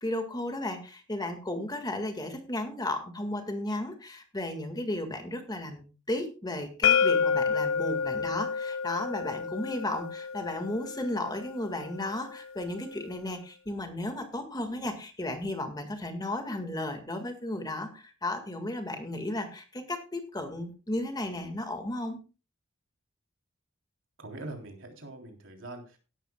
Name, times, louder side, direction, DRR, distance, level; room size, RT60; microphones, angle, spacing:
voice 1, 0.0-22.2, left 1 dB, 20° left, 5 dB, 1.9 m, -34 dB
sound 1, 6.8-12.6, left 6 dB, 80° left, 0.6 m, -29 dB
voice 2, 24.2-26.0, right 2 dB, 70° right, 2 dB, 3.5 m, -43 dB
16.5 x 12.0 x 2.3 m, 0.33 s
head